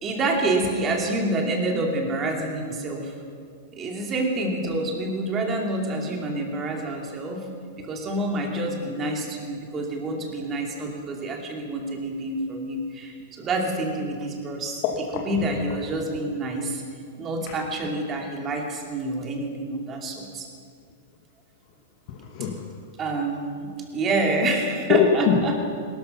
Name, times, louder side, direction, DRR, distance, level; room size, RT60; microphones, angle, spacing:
voice 1, 0.0-3.1 3.7-7.5 7.8-14.8 15.1-16.8 17.2-20.5 23.0-25.6, right 2 dB, 25° right, 1 dB, 2.6 m, -27 dB
voice 2, 14.8-15.2 22.1-22.7 24.9-25.6, left 6 dB, 50° left, 2 dB, 1.6 m, -22 dB
18.5 x 12.5 x 5.7 m, 2.2 s
hypercardioid pair, 145°, 0 cm